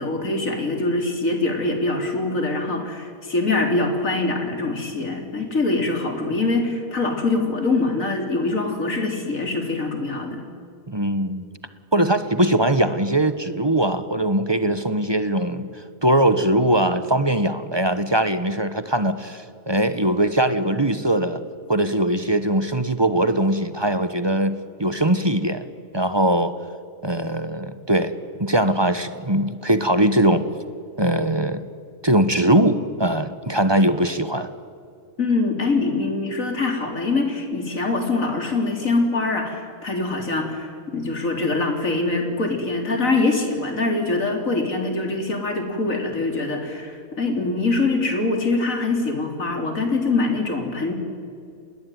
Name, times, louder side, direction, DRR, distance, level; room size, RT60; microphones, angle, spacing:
voice 1, 0.0-10.5 35.2-50.9, left 3 dB, 70° left, 3 dB, 4.2 m, -24 dB
voice 2, 10.9-11.5 11.9-15.7 16.0-21.4 21.7-25.7 25.9-26.5 27.0-28.1 28.4-30.4 31.0-31.6 32.0-34.5, right 1 dB, 20° right, 11 dB, 1.1 m, -21 dB
27.5 x 20.5 x 9.5 m, 2.4 s
omnidirectional pair, 1.4 m